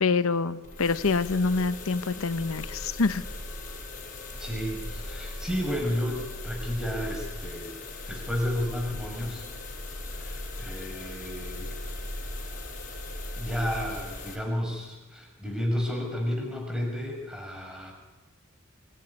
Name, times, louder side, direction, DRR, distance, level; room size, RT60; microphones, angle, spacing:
voice 1, 0.0-3.2, left 4 dB, 90° left, 13 dB, 0.8 m, -26 dB
sound 1, 0.6-14.4, left 2 dB, 40° left, 7.6 m, -38 dB
voice 2, 4.4-7.7 8.1-9.4 10.1-11.8 13.4-17.9, equal, 5° right, 0 dB, 5.9 m, -32 dB
23.5 x 16.0 x 9.8 m, 1.2 s
head